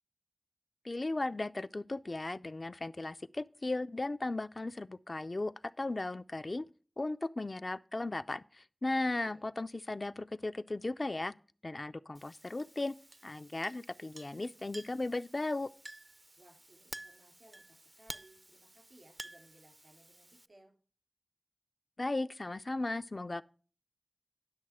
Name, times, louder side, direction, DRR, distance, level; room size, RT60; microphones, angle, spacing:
voice 1, 0.8-5.5 5.8-6.7 7.0-11.3 11.6-12.9 13.2-15.7 22.0-23.4, left 2 dB, 60° left, 0.4 m, -36 dB
Chink clink, 12.1-20.5, right 1 dB, 35° right, 0.4 m, -52 dB
voice 2, 16.4-20.7, right 1 dB, 85° right, 3.9 m, -62 dB
10.5 x 6.5 x 4.8 m
wide cardioid pair, 40°, 0 cm